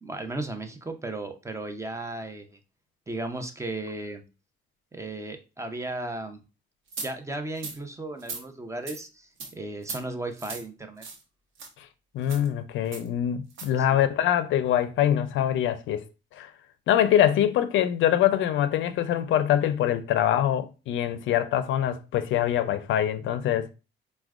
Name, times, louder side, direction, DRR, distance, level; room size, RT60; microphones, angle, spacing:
voice 1, 0.0-2.6 3.1-4.2 4.9-6.4 7.0-11.0 13.7-14.0, right 2 dB, 15° right, 0.6 m, -35 dB
sound 1, 6.9-7.1 7.6-7.8 8.2-8.4 8.9-9.0 9.4-9.5 9.8-10.0 10.4-10.6 11.0-11.2 11.6-11.7 12.2-12.5 12.9-13.1 13.5-13.7, right 4 dB, 80° right, 0.8 m, -37 dB
voice 2, 12.1-16.0 16.3-16.5 16.9-23.7, left 11 dB, 75° left, 0.4 m, -24 dB
4.4 x 2.2 x 2.3 m
cardioid pair, 90°, 20 cm